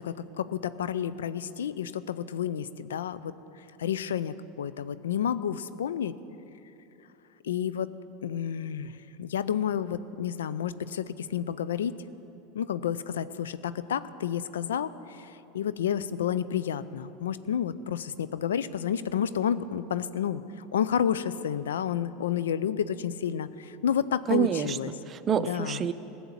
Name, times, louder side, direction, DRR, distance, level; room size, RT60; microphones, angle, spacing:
voice 1, 0.0-3.3 3.8-6.2 7.4-7.9 8.2-12.0 12.5-24.9 25.4-25.8, left 9 dB, 85° left, 15 dB, 0.4 m, -30 dB
voice 2, 24.3-25.9, right 8 dB, 35° right, 13 dB, 0.5 m, -28 dB
15.5 x 7.0 x 8.7 m, 3.0 s
hypercardioid pair, 95°, 0 cm